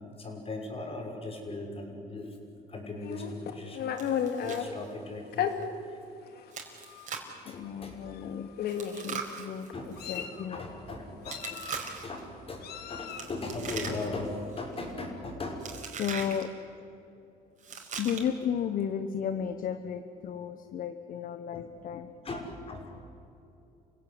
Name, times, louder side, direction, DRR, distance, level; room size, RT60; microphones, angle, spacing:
voice 1, 0.0-2.4 2.7-4.0 4.4-5.5 5.9-6.0 7.4-8.3 9.7-9.9 10.1-15.7 21.5-21.7 22.2-23.0, left 2 dB, 35° left, 2 dB, 6.2 m, -39 dB
Meow, 3.0-4.7 5.3-5.5 6.4-6.5 6.9-7.1 8.1-8.2 8.6-9.1 9.7-10.4 11.3-12.0 12.6-13.3, left 9 dB, 70° left, 2.4 m, -34 dB
Chewing mastication, 4.0-4.6 4.9-5.0 5.5-5.6 6.5-7.4 8.7-10.2 11.3-12.2 13.1-14.3 14.5-14.9 15.6-16.4 17.6-18.4, right 6 dB, 45° right, 4.9 m, -40 dB
voice 2, 7.4-8.5 9.0-10.6 16.0-16.5 18.0-22.1, left 8 dB, 55° left, 10 dB, 1.2 m, -34 dB
29.0 x 16.5 x 9.9 m, 2.8 s
cardioid pair, 110°, 17 cm